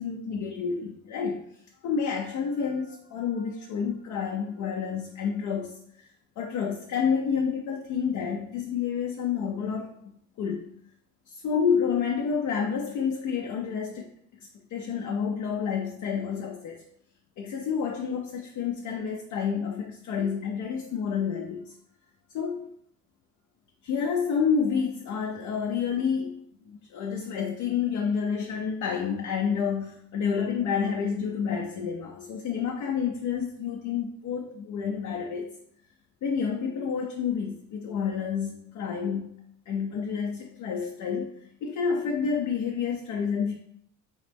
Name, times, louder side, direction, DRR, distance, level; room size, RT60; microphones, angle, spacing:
voice 1, 0.0-1.4 1.8-6.1 6.4-9.9 10.4-10.7 11.3-14.1 14.7-16.8 17.4-21.7 22.3-22.7 23.8-35.6 36.2-39.3 39.7-43.5, left 6 dB, 65° left, 1 dB, 0.6 m, -29 dB
4.1 x 3.2 x 3.4 m, 0.71 s
cardioid pair, 125°, 33 cm